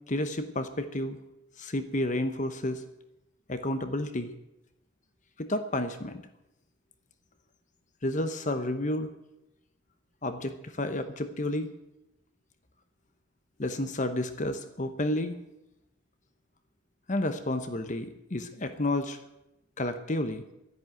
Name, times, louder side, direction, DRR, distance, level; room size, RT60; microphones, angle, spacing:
voice 1, 0.1-1.2 1.6-2.8 3.5-4.3 5.4-6.2 8.0-9.1 10.2-11.7 13.6-15.4 17.1-19.2 19.8-20.4, left 1 dB, 35° left, 9 dB, 1.0 m, -31 dB
11.5 x 11.0 x 9.0 m, 0.91 s
head